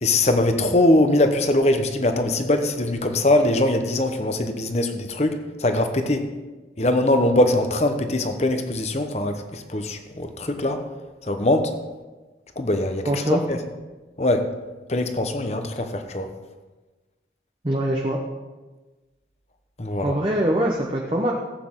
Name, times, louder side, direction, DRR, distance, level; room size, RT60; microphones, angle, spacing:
voice 1, 0.0-6.2 6.8-10.8 11.3-11.7 12.6-13.6 14.2-14.5 14.9-16.3 19.8-20.1, left 1 dB, 40° left, 7 dB, 0.9 m, -22 dB
voice 2, 13.1-13.4 17.6-18.2 20.0-21.3, right 1 dB, 30° right, -1 dB, 0.8 m, -23 dB
15.0 x 8.4 x 3.7 m, 1.2 s
head